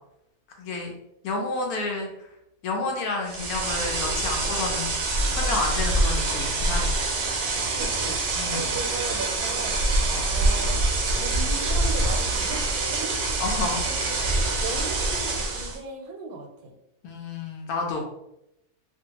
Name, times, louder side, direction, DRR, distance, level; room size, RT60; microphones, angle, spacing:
voice 1, 0.6-0.9 1.2-2.3 2.6-4.9 5.3-7.0 8.3-8.7 10.1-10.3 13.4-13.8 17.0-18.0, left 3 dB, 80° left, 1 dB, 1.1 m, -30 dB
sound 1, 3.2-15.8, right 2 dB, 65° right, 0.8 m, -25 dB
voice 2, 7.8-8.2 8.5-9.8 10.3-10.8 11.1-13.4 13.9-16.7, right 4 dB, 85° right, 3 dB, 1.1 m, -37 dB
2.6 x 2.4 x 2.8 m, 0.83 s
omnidirectional pair, 1.6 m